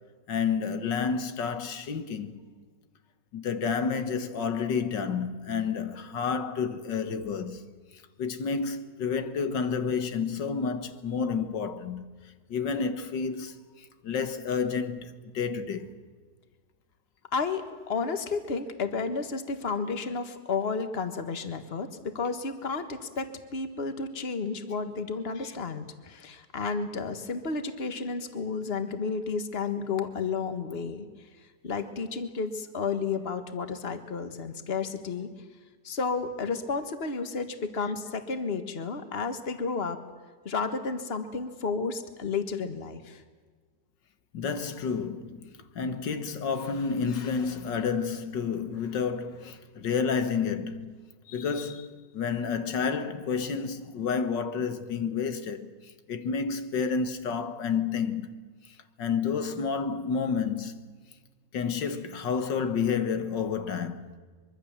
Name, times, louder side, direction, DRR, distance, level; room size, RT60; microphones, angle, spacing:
voice 1, 0.3-2.4 3.3-7.6 8.2-12.1 12.5-15.9 25.4-25.6 44.3-51.0 51.3-58.3 58.7-60.9 61.5-64.0, left 6 dB, 90° left, 2.1 m, -30 dB
voice 2, 17.3-31.1 31.6-35.3 35.8-40.0 40.5-43.2, left 4 dB, 35° left, 1.8 m, -32 dB
24.5 x 23.5 x 7.4 m
omnidirectional pair, 1.9 m